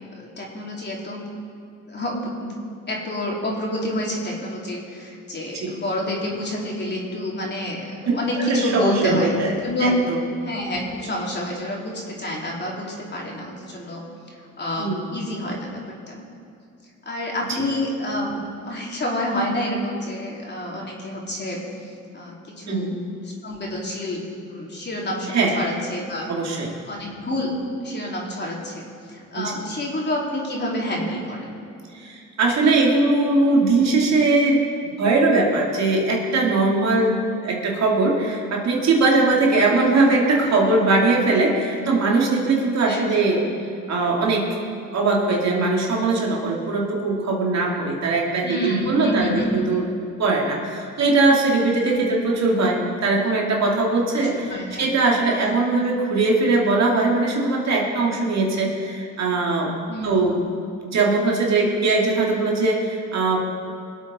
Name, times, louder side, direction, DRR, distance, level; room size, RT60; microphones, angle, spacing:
voice 1, 0.1-1.2 1.9-2.5 2.9-10.0 10.4-15.8 16.1-16.2 17.0-22.9 23.2-26.3 26.9-31.6 39.4-39.7 42.8-43.2 48.4-49.8 51.9-52.1 54.1-55.5 59.9-60.3, left 1 dB, 35° left, -3 dB, 3.3 m, -28 dB
voice 2, 8.5-10.2 14.8-15.0 22.7-22.9 25.3-25.5 26.3-26.7 29.3-29.5 31.9-34.6 35.0-43.4 43.9-44.5 44.9-49.9 50.2-59.7 60.0-60.4 60.8-63.4, right 3 dB, 60° right, -1 dB, 2.6 m, -20 dB
23.0 x 8.3 x 4.3 m, 2.5 s
cardioid pair, 90°, 30 cm